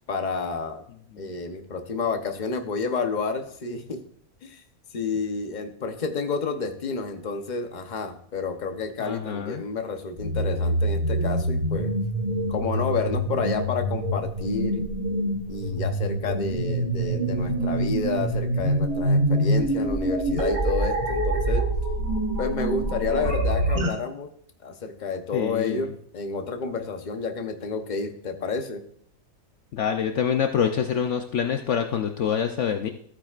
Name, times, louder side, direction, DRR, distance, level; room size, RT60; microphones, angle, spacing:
voice 1, 0.1-0.8 1.2-4.0 4.4-4.6 4.9-11.9 12.5-14.8 15.5-21.7 22.4-24.3 24.6-28.8, left 4 dB, 35° left, 5 dB, 0.9 m, -30 dB
voice 2, 9.0-9.6 25.3-25.9 29.7-32.9, left 8 dB, 65° left, 5 dB, 0.9 m, -26 dB
sound 1, 10.2-23.9, right 1 dB, 90° right, 2.8 m, -25 dB
14.0 x 8.9 x 2.5 m, 0.65 s
omnidirectional pair, 1.5 m